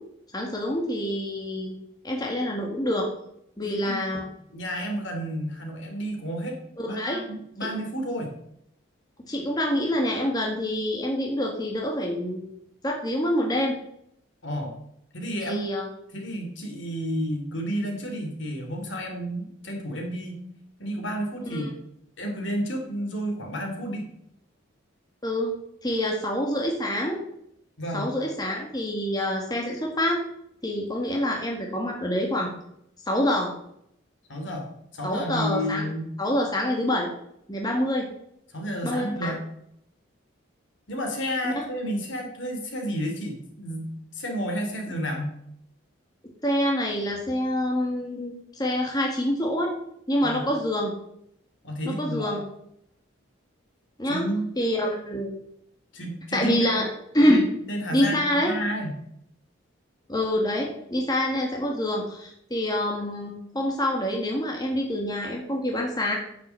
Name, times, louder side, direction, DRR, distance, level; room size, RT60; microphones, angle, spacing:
voice 1, 0.3-1.7 2.0-3.1 3.6-4.2 6.8-7.2 7.6-7.7 9.3-12.5 12.8-13.8 15.4-15.9 21.5-21.7 25.2-25.5 25.8-27.2 27.9-30.2 30.6-32.5 33.1-33.5 35.0-35.8 36.2-37.1 37.5-38.1 38.8-39.3 41.4-41.6 46.4-49.7 50.1-50.9 51.8-52.4 54.0-54.2 54.6-55.3 56.3-56.9 57.1-57.4 57.9-58.5 60.1-66.2, left 1 dB, 20° left, 0 dB, 1.7 m, -26 dB
voice 2, 3.6-4.0 4.5-6.6 6.8-8.3 14.4-14.7 15.1-15.6 16.1-20.4 20.8-21.7 22.2-24.1 27.8-28.1 34.3-36.1 38.5-39.4 40.9-45.4 50.2-50.5 51.6-52.4 54.0-54.5 55.9-56.6 57.2-59.0, equal, 65° left, 2 dB, 2.8 m, -31 dB
9.9 x 6.0 x 7.6 m, 0.73 s
head